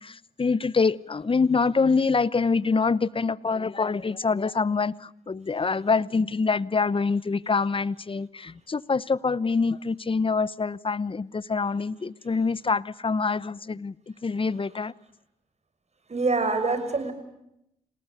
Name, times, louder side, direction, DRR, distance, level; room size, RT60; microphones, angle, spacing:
voice 1, 0.0-13.9 14.2-14.9, left 4 dB, 35° left, 0.9 m, -25 dB
voice 2, 16.1-17.1, right 3 dB, 45° right, 6.1 m, -25 dB
28.0 x 19.0 x 8.3 m
supercardioid pair, 45°, 16 cm